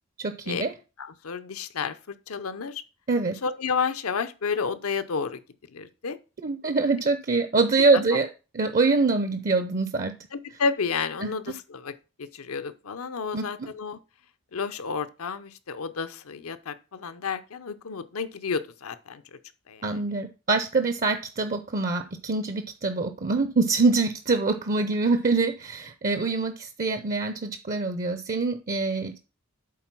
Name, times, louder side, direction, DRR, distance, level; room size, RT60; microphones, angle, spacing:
voice 1, 0.2-0.7 3.1-3.4 6.4-8.3 8.5-10.2 11.2-11.3 13.3-13.5 19.8-29.2, right 3 dB, 40° right, 0.6 m, -24 dB
voice 2, 1.0-2.8 3.4-5.4 5.7-6.2 7.9-8.2 10.3-11.9 12.2-14.0 14.5-19.4 19.7-19.8, left 5 dB, 80° left, 0.7 m, -31 dB
8.5 x 3.8 x 6.0 m
head